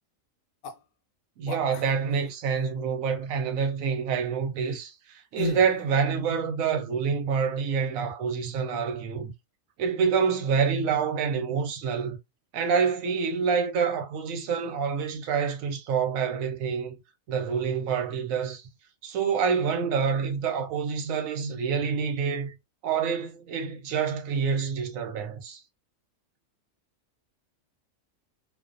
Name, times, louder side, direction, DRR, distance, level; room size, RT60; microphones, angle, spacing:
sound 1, 0.6-0.8 1.5-2.3 5.4-5.8, left 3 dB, 90° left, 1.0 m, -33 dB
voice 1, 1.4-9.3 9.8-12.2 12.5-17.0 17.3-18.6 19.0-22.5 22.8-25.6, right 6 dB, 85° right, 1.0 m, -27 dB
2.4 x 2.2 x 2.5 m
omnidirectional pair, 1.4 m